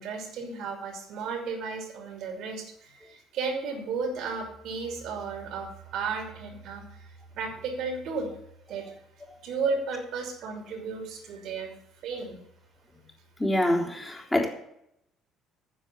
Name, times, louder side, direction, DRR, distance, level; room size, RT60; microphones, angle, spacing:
voice 1, 0.0-7.0 7.4-8.3 8.7-8.9 9.4-11.7 12.0-12.4, right 4 dB, 55° right, 4 dB, 3.0 m, -34 dB
voice 2, 13.4-14.5, left 1 dB, 10° left, 0 dB, 3.5 m, -25 dB
10.0 x 7.3 x 8.4 m, 0.75 s
figure-of-eight pair, 50°, 0 cm